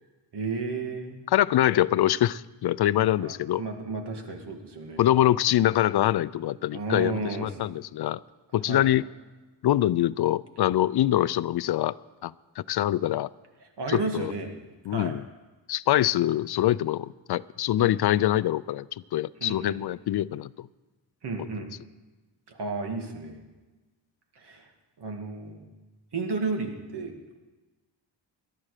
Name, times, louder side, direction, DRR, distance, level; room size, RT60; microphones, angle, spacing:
voice 1, 0.3-1.2 3.2-5.0 6.7-7.6 8.7-8.9 13.8-14.5 14.9-15.1 17.8-17.9 19.4-19.8 21.2-21.7 22.5-23.4 24.4-24.7 25.0-25.7 26.1-27.4, right 4 dB, 65° right, 4 dB, 2.2 m, -33 dB
voice 2, 1.3-3.6 5.0-8.2 8.5-9.0 9.6-12.0 12.2-13.3 13.9-14.3 14.9-15.2 15.7-18.9 19.1-20.7, left 13 dB, 60° left, 18 dB, 0.5 m, -24 dB
18.0 x 12.0 x 5.0 m, 1.2 s
cardioid pair, 95°, 43 cm